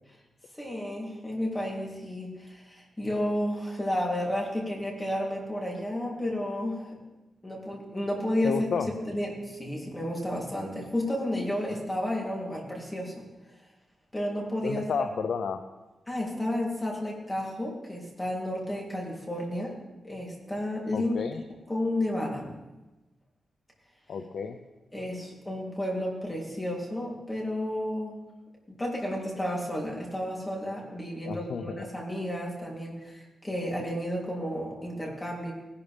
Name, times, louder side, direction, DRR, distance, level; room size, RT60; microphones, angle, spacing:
voice 1, 0.6-6.9 7.4-8.6 9.1-13.1 14.1-14.8 16.1-19.8 20.0-21.2 21.7-22.5 24.9-28.2 28.7-35.5, left 1 dB, 15° left, -2 dB, 3.2 m, -32 dB
voice 2, 8.4-8.9 14.6-15.6 20.9-21.4 24.1-24.6 31.2-31.9, left 6 dB, 75° left, 6 dB, 0.7 m, -31 dB
18.5 x 11.5 x 3.5 m, 1.1 s
wide cardioid pair, 125°, 0 cm